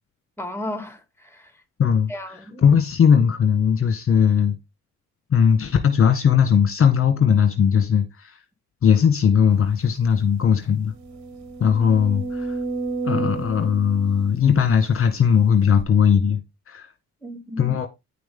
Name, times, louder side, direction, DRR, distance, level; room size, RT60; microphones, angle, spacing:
voice 1, 0.4-1.5 2.1-2.6 17.2-17.7, left 1 dB, 10° left, 2.5 m, -34 dB
voice 2, 1.8-4.6 5.3-8.4 8.8-10.9 11.6-12.6 13.0-16.9 17.6-17.9, left 7 dB, 45° left, 1.6 m, -19 dB
sound 1, 9.8-9.9 10.3-10.4 10.9-15.1 15.8-15.9, right 3 dB, 70° right, 3.2 m, -31 dB
10.0 x 6.1 x 3.7 m
cardioid pair, 90°, 30 cm